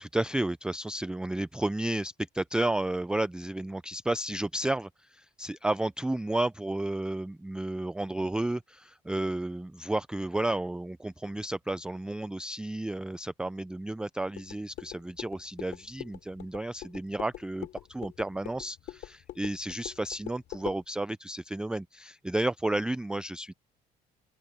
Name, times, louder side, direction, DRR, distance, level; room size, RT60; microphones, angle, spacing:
voice 1, 0.0-23.5, right 1 dB, 5° right, 0.4 m, -32 dB
sound 1, 14.3-20.8, left 13 dB, 70° left, 3.1 m, -44 dB
open air
cardioid pair, 110°, 17 cm